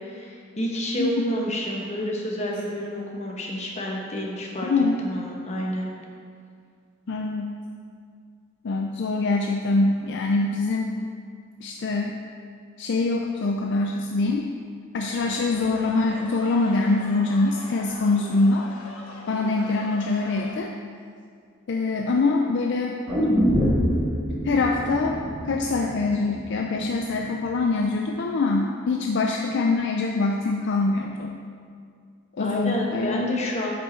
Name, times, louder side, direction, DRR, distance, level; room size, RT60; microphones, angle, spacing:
voice 1, 0.0-4.7 5.0-5.9 32.4-33.7, equal, 30° left, -2 dB, 1.1 m, -29 dB
voice 2, 7.1-7.5 8.6-10.9 11.6-12.1 12.8-14.4 14.9-18.7 19.3-20.7 21.7-23.0 24.4-25.2 25.4-31.3 32.4-33.4, left 3 dB, 55° left, 1 dB, 0.4 m, -24 dB
sound 1, 15.0-20.6, left 2 dB, 85° left, 1.1 m, -42 dB
sound 2, 23.1-27.1 27.4-27.5, equal, 20° right, 1.6 m, -25 dB
7.7 x 5.4 x 4.4 m, 2.2 s
head